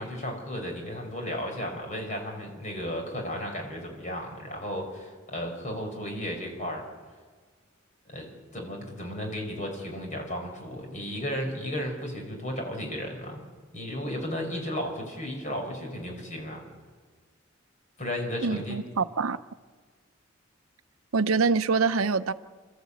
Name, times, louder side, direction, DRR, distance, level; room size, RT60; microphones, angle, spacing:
voice 1, 0.0-6.8 8.1-13.4 13.7-16.6 18.0-18.8, equal, 35° left, 5.1 m, -34 dB
voice 2, 18.4-19.4 21.1-22.3, right 4 dB, 90° right, 0.7 m, -25 dB
29.0 x 14.0 x 8.5 m
head